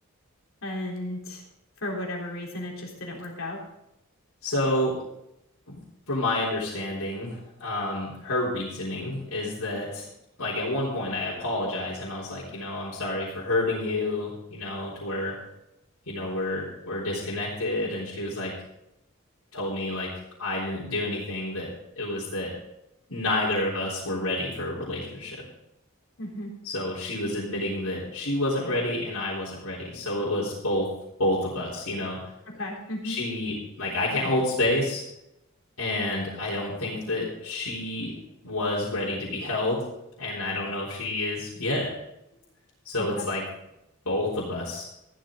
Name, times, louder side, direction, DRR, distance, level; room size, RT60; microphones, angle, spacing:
voice 1, 0.6-1.4 1.8-3.6 26.2-26.5 32.5-33.2 43.0-43.3, left 1 dB, 65° left, -1 dB, 3.7 m, -34 dB
voice 2, 4.4-5.0 5.7-5.8 6.1-10.1 10.4-15.4 16.1-18.5 19.5-20.1 20.4-21.7 22.0-22.5 23.1-25.4 26.6-30.9 31.2-32.2 33.0-35.0 35.8-38.1 38.4-39.8 40.2-41.9 42.8-43.4 44.1-44.9, left 1 dB, 85° left, -7 dB, 3.7 m, -29 dB
15.0 x 12.0 x 3.8 m, 0.84 s
head